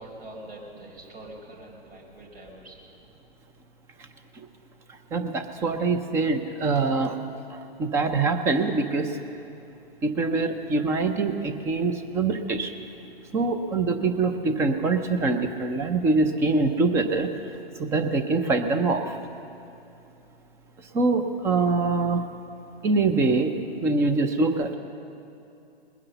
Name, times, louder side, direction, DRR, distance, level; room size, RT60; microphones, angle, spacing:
voice 1, 0.0-2.8, right 1 dB, 75° right, -2 dB, 4.6 m, -44 dB
voice 2, 5.1-7.2 7.8-9.2 10.0-12.7 13.3-17.3 17.8-19.1 20.9-22.2 22.8-23.5 23.8-24.8, right 3 dB, 10° right, 8 dB, 0.4 m, -24 dB
20.5 x 9.7 x 6.8 m, 2.7 s
hypercardioid pair, 135°, 31 cm